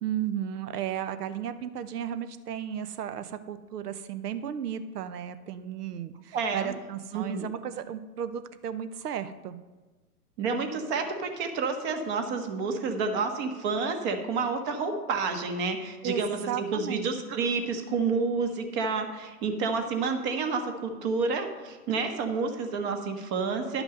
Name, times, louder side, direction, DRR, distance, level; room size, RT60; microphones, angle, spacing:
voice 1, 0.0-9.6 16.0-17.0, right 9 dB, 80° right, 12 dB, 0.8 m, -34 dB
voice 2, 6.3-6.7 7.1-7.5 10.4-23.8, right 4 dB, 45° right, 5 dB, 1.5 m, -29 dB
11.0 x 6.0 x 5.3 m, 1.2 s
hypercardioid pair, 115°, 46 cm